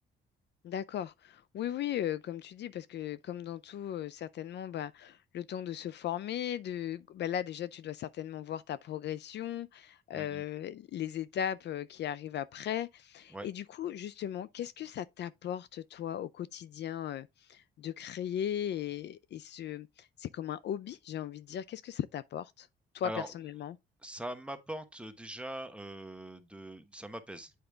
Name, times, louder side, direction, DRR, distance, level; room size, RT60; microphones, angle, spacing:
voice 1, 0.6-22.7 22.9-23.8, left 10 dB, 60° left, 0.4 m, -37 dB
voice 2, 10.1-10.4 13.3-13.5 23.0-23.3 24.0-27.5, right 1 dB, 5° right, 1.2 m, -42 dB
8.0 x 5.0 x 3.3 m
cardioid pair, 90°, 20 cm